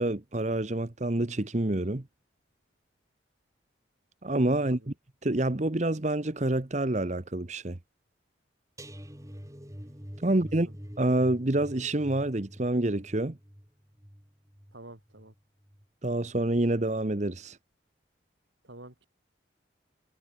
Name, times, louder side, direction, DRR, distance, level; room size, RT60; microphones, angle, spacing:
voice 1, 0.0-2.0 4.2-4.9 5.2-7.8 10.2-10.7 11.0-13.4 16.0-17.6, right 1 dB, 35° right, 1.0 m, -27 dB
voice 2, 4.6-4.9 10.2-10.3 10.6-10.7 14.7-15.3 18.6-19.1, right 1 dB, 70° right, 3.9 m, -49 dB
sound 1, 8.8-15.8 16.2-16.5 16.8-17.0, equal, 15° right, 6.2 m, -47 dB
head